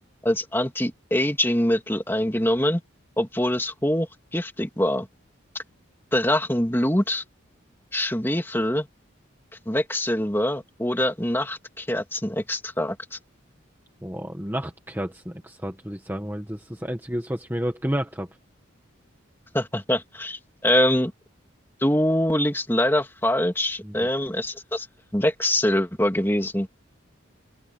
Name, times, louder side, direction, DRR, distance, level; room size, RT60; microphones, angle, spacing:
voice 1, 0.2-2.8 3.2-5.1 6.1-7.2 7.9-8.9 9.7-13.2 19.5-21.1 21.8-24.9 25.1-26.7, left 1 dB, 10° left, 3.0 m, -24 dB
voice 2, 14.0-18.3 23.8-24.1, equal, 10° right, 1.6 m, -31 dB
open air
head